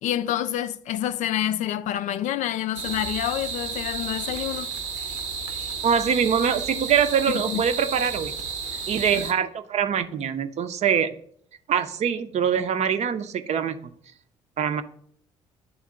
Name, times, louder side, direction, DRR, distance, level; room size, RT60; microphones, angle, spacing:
voice 1, 0.0-4.7 7.3-7.6 9.1-9.2, left 11 dB, 60° left, 0.4 m, -28 dB
sound 1, 2.8-9.3, right 5 dB, 85° right, 1.0 m, -32 dB
voice 2, 5.8-8.3 8.9-11.1 11.7-13.8 14.6-14.8, right 7 dB, 50° right, 0.6 m, -23 dB
10.0 x 3.6 x 3.6 m
hypercardioid pair, 50°, 14 cm